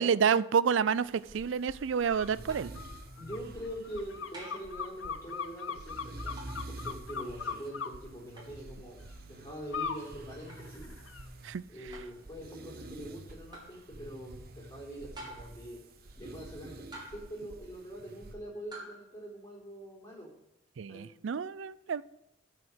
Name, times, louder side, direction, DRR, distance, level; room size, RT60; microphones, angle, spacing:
voice 1, 0.0-2.7 11.4-11.6 20.8-22.0, right 6 dB, 75° right, 19 dB, 0.4 m, -29 dB
sound 1, 0.9-18.3, right 2 dB, 50° right, 1.0 m, -48 dB
sound 2, 2.1-2.3 2.7-7.9 9.7-10.0 10.5-11.2, left 6 dB, 90° left, 0.7 m, -39 dB
sound 3, 2.5-2.8 4.3-4.7 6.4-6.6 8.4-8.5 10.5-10.7 11.9-12.2 13.5-13.8 15.1-15.6 16.9-17.4 18.7-19.0, right 1 dB, 20° right, 2.9 m, -47 dB
voice 2, 3.2-6.4 6.7-9.0 9.3-10.9 11.7-15.8 16.2-20.3 20.9-21.1, right 1 dB, 15° left, -3 dB, 3.7 m, -44 dB
9.2 x 5.0 x 7.9 m, 0.85 s
head